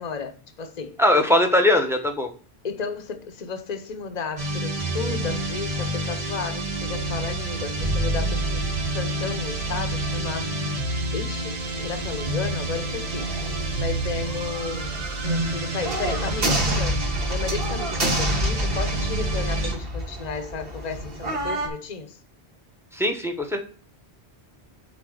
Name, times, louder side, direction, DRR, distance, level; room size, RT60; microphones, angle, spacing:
voice 1, 0.0-1.0 2.6-8.6 8.9-10.5 11.1-13.5 13.8-17.0 17.3-22.2, left 5 dB, 40° left, 0.9 m, -33 dB
voice 2, 1.0-2.3 22.9-23.6, left 1 dB, 5° right, 1.0 m, -20 dB
sound 1, 4.4-19.8, right 1 dB, 35° right, 1.1 m, -28 dB
sound 2, 11.6-21.7, right 1 dB, 60° right, 2.0 m, -30 dB
8.8 x 3.8 x 6.4 m
omnidirectional pair, 1.1 m